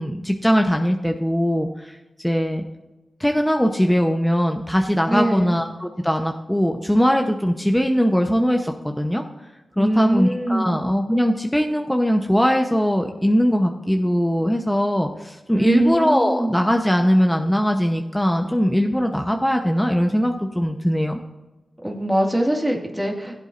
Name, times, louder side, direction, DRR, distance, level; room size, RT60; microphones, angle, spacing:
voice 1, 0.0-2.0 2.2-2.6 3.2-9.2 9.8-21.2, equal, 5° left, 3 dB, 0.9 m, -20 dB
voice 2, 5.1-5.6 9.8-10.8 15.5-16.6 21.8-23.4, right 1 dB, 10° right, 1 dB, 2.0 m, -22 dB
16.0 x 8.1 x 2.6 m, 1.1 s
cardioid pair, 50°, 0 cm